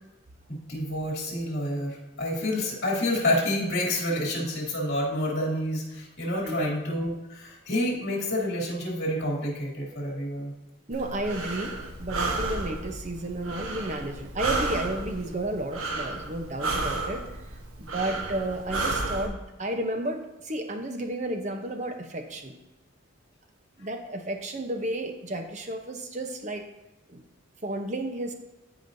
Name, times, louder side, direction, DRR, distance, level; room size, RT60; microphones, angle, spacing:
voice 1, 0.5-10.5, left 1 dB, 50° left, -3 dB, 2.9 m, -28 dB
voice 2, 6.3-6.7 10.9-17.2 17.5-22.5 23.8-26.7 27.1-27.2 27.6-28.3, right 1 dB, 35° right, 5 dB, 0.8 m, -32 dB
Breathing, 10.9-19.3, right 2 dB, 85° right, 1.2 m, -32 dB
13.5 x 5.0 x 2.7 m, 1.0 s
head